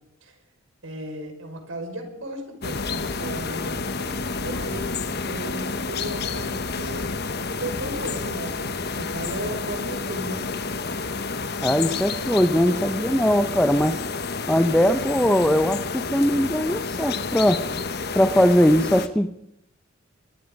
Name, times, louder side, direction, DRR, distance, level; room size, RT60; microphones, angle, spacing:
voice 1, 0.8-4.9 5.2-10.7, right 1 dB, 75° right, 5 dB, 5.6 m, -35 dB
sound 1, 2.6-19.1, left 4 dB, 50° left, 1.3 m, -30 dB
voice 2, 11.6-14.0 14.5-17.7 18.1-19.3, equal, 5° left, 9 dB, 0.7 m, -20 dB
23.5 x 21.5 x 5.3 m, 0.80 s
head